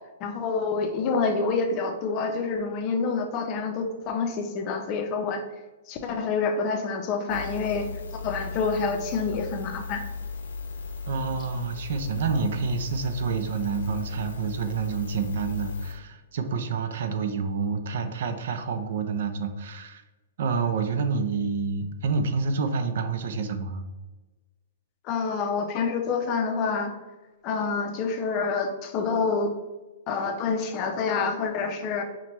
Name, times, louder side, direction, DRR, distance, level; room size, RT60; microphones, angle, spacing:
voice 1, 0.2-5.4 5.9-10.0 25.0-26.9 27.4-29.5 30.1-32.0, left 4 dB, 30° left, 5 dB, 0.5 m, -27 dB
sound 1, 7.3-15.9, left 4 dB, 80° left, 0.7 m, -36 dB
voice 2, 11.1-20.0 20.4-23.9, right 5 dB, 60° right, 8 dB, 0.5 m, -28 dB
5.6 x 2.2 x 3.0 m, 1.2 s
hypercardioid pair, 155°, 0 cm